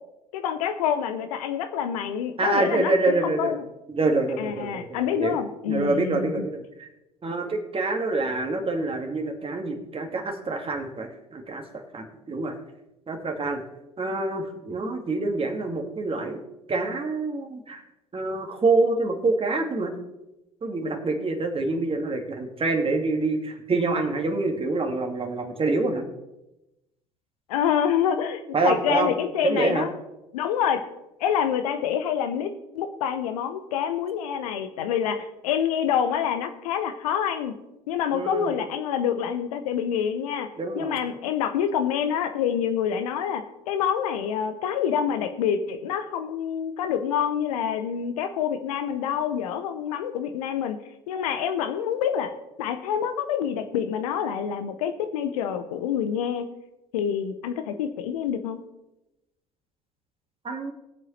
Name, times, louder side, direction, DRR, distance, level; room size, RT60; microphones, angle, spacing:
voice 1, 0.3-2.9 3.2-3.6 4.4-6.5 27.5-29.9 30.3-30.9 31.2-37.5 37.9-40.5 40.8-50.8 51.1-52.3 52.6-56.5 56.9-58.6, left 8 dB, 70° left, 9 dB, 0.9 m, -27 dB
voice 2, 2.4-3.6 3.9-5.4 5.7-6.9 7.2-12.5 13.1-13.6 14.0-16.4 16.7-17.8 18.1-19.9 20.6-26.1 28.5-29.1 29.4-29.9 38.1-38.5 40.6-41.0 60.4-60.7, right 3 dB, 30° right, 3 dB, 2.1 m, -26 dB
21.5 x 7.6 x 3.3 m, 0.95 s
figure-of-eight pair, 60°, 20 cm